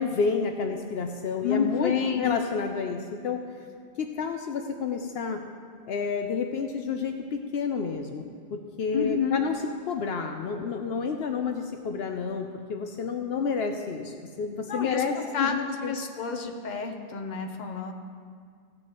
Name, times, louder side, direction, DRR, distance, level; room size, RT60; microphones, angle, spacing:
voice 1, 0.0-1.9 2.2-3.4 4.0-5.4 5.9-8.2 8.5-9.5 9.9-15.1 15.4-15.9, left 5 dB, 75° left, 4 dB, 0.8 m, -30 dB
voice 2, 1.4-2.4 8.9-9.4 14.7-17.9, left 6 dB, 45° left, 4 dB, 1.0 m, -29 dB
16.0 x 8.9 x 3.0 m, 2.1 s
omnidirectional pair, 1.1 m